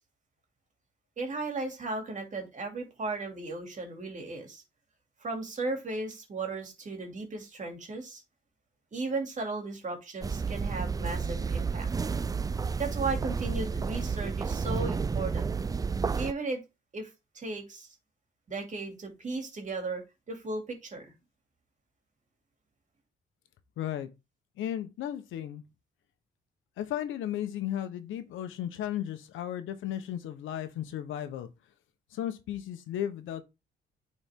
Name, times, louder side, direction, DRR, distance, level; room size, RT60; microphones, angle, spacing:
voice 1, 1.2-4.6 5.2-8.2 8.9-11.9 12.8-15.5 16.1-16.6 16.9-17.1 17.3-17.9 18.5-20.0 20.3-21.1, right 3 dB, 40° right, 2.8 m, -35 dB
sound 1, 10.2-16.3, right 5 dB, 20° right, 0.3 m, -31 dB
voice 2, 23.8-24.1 24.6-25.6 26.8-31.5 32.1-33.4, left 11 dB, 85° left, 1.1 m, -35 dB
9.1 x 4.4 x 3.7 m
cardioid pair, 90°, 20 cm